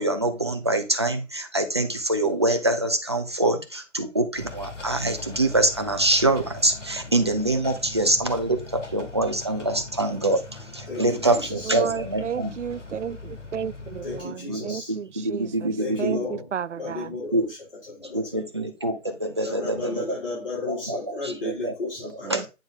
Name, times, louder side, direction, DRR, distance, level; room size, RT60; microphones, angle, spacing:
voice 1, 0.0-10.4 10.7-12.5 14.5-14.6 14.9-16.2 17.3-17.4 18.1-20.0 20.7-21.7 22.3-22.5, right 2 dB, 25° right, 0.5 m, -25 dB
sound 1, 4.4-14.2, left 3 dB, 75° left, 1.7 m, -41 dB
voice 2, 10.9-12.0 14.0-14.9 15.8-16.5 16.8-17.6 17.9-18.4 19.4-22.5, left 3 dB, 45° left, 3.6 m, -34 dB
voice 3, 11.7-15.7 16.0-17.1 22.3-22.4, right 7 dB, 75° right, 0.5 m, -33 dB
8.9 x 3.8 x 3.8 m
figure-of-eight pair, 145°, 37 cm